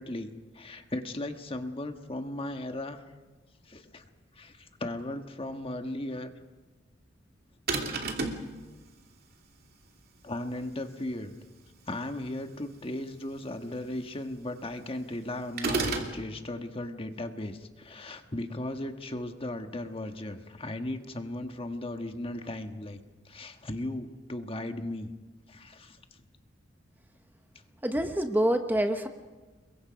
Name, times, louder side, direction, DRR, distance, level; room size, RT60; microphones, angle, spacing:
voice 1, 0.0-3.0 3.7-4.1 4.4-6.3 10.2-11.3 11.9-25.1 25.5-26.0, left 1 dB, 30° left, 6 dB, 1.5 m, -36 dB
sound 1, 7.7-8.5 15.6-16.2, right 3 dB, 55° right, 2.8 m, -30 dB
voice 2, 27.8-29.1, right 1 dB, 10° right, 6 dB, 1.1 m, -26 dB
29.0 x 22.5 x 5.2 m, 1.3 s
head